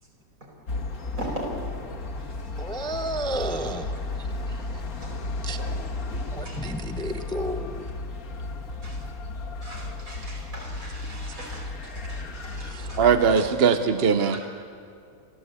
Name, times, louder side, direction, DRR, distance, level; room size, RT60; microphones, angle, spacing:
sound 1, 0.7-13.4, left 2 dB, 80° left, 2.0 m, -34 dB
voice 1, 1.2-1.5 5.0-5.2 5.6-5.8 6.1-6.6 8.8-9.0 9.6-13.0 13.3-13.4, right 1 dB, 70° right, -1 dB, 5.3 m, -40 dB
voice 2, 2.6-3.9 5.4-5.6 6.3-7.9 12.6-12.9, right 1 dB, 5° left, 8 dB, 0.6 m, -32 dB
voice 3, 13.0-14.4, right 6 dB, 50° right, 9 dB, 1.0 m, -20 dB
29.0 x 13.5 x 8.3 m, 2.3 s
omnidirectional pair, 1.5 m